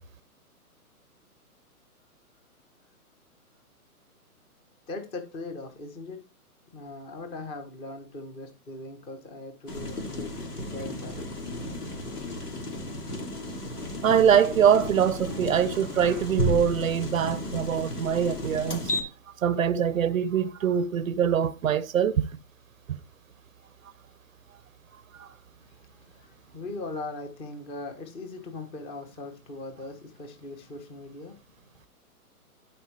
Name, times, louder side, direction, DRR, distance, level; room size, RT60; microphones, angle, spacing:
voice 1, 4.9-6.2 6.7-11.3 25.6-31.9, left 2 dB, 10° left, 0.9 m, -40 dB
sound 1, 9.7-19.0, left 1 dB, 80° left, 2.7 m, -33 dB
voice 2, 14.0-18.9 19.4-22.3 22.9-23.0 25.1-25.3, right 8 dB, 60° right, 0.7 m, -23 dB
12.0 x 4.5 x 3.2 m
hypercardioid pair, 135°, 45 cm